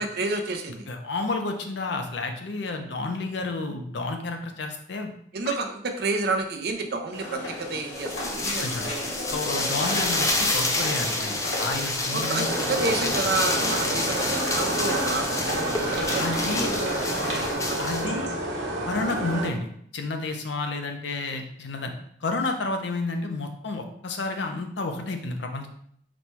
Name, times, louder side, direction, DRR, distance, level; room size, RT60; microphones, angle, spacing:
voice 1, 0.0-0.9 5.3-9.0 12.1-17.8, right 3 dB, 55° right, 5 dB, 0.5 m, -30 dB
voice 2, 0.9-5.1 5.4-5.5 8.6-8.9 9.3-12.5 16.1-16.7 17.3-17.4 17.8-18.3 18.9-21.9 22.2-25.7, left 3 dB, 65° left, 5 dB, 0.6 m, -31 dB
sound 1, 7.1-17.5, left 1 dB, 85° left, 1.7 m, -33 dB
sound 2, 8.0-18.1, left 2 dB, 15° left, 0.4 m, -29 dB
sound 3, 12.5-19.5, right 1 dB, 85° right, 1.0 m, -30 dB
4.2 x 2.2 x 4.4 m, 0.65 s
head